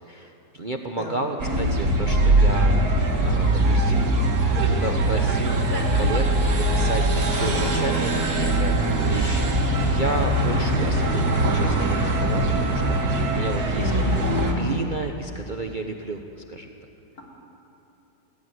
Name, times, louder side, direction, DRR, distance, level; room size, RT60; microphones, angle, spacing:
voice 1, 0.1-2.8 3.2-4.1 4.7-6.3 6.5-14.2 14.6-16.7, right 2 dB, 35° right, 3 dB, 0.9 m, -32 dB
voice 2, 1.0-1.3 7.4-7.9 13.7-14.8, equal, 60° left, -2 dB, 4.0 m, -32 dB
sound 1, 1.4-14.5, right 1 dB, 65° right, 2.6 m, -21 dB
20.5 x 14.5 x 9.4 m, 2.9 s
omnidirectional pair, 1.8 m